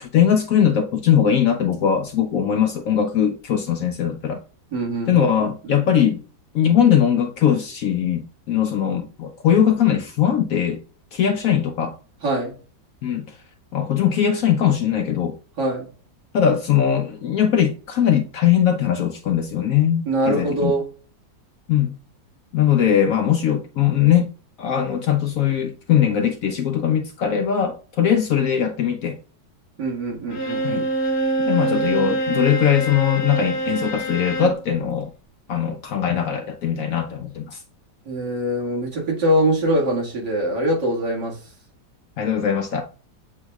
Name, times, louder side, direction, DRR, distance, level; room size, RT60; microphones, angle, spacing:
voice 1, 0.0-4.4 5.1-6.2 6.5-10.8 11.1-11.9 13.0-13.3 13.7-15.3 16.3-20.7 21.7-21.9 22.5-24.3 24.6-29.2 30.6-30.8 31.4-35.1 35.5-37.6 42.2-42.8, left 9 dB, 70° left, 0.9 m, -20 dB
voice 2, 4.7-5.8 12.2-12.5 15.6-15.9 20.1-20.9 29.8-30.9 38.1-41.4, right 1 dB, 80° right, 2.5 m, -23 dB
Bowed string instrument, 30.3-34.6, right 1 dB, 45° left, 1.1 m, -25 dB
7.1 x 3.0 x 2.3 m
omnidirectional pair, 1.9 m